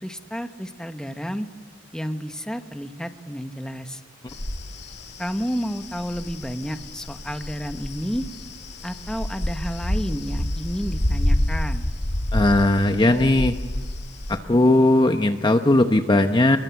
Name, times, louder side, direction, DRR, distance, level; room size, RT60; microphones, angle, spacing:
voice 1, 0.0-1.5 1.9-4.0 5.2-8.3 8.8-11.9, equal, 5° left, 7 dB, 1.2 m, -31 dB
sound 1, 4.3-14.4, left 1 dB, 60° left, 2.2 m, -28 dB
voice 2, 12.3-13.5 14.3-16.6, left 1 dB, 25° left, 7 dB, 0.8 m, -18 dB
27.5 x 22.5 x 8.4 m, 1.3 s
head